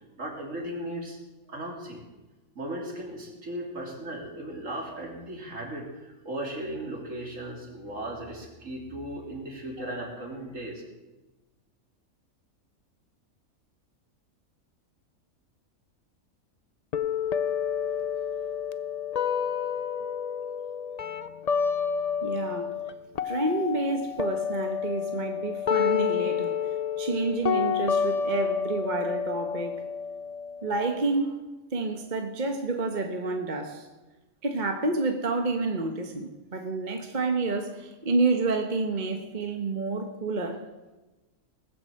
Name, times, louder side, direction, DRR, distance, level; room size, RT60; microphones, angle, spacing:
voice 1, 0.2-1.2 1.5-2.0 2.6-10.8, right 1 dB, 60° right, 0 dB, 3.5 m, -36 dB
sound 1, 16.9-22.9 23.2-30.9, left 7 dB, 50° left, 0.4 m, -29 dB
voice 2, 22.2-22.7 23.2-29.7 30.6-31.4 31.7-33.9 34.4-40.6, right 3 dB, 35° right, 4 dB, 1.2 m, -29 dB
20.0 x 7.7 x 7.7 m, 1.1 s
omnidirectional pair, 1.5 m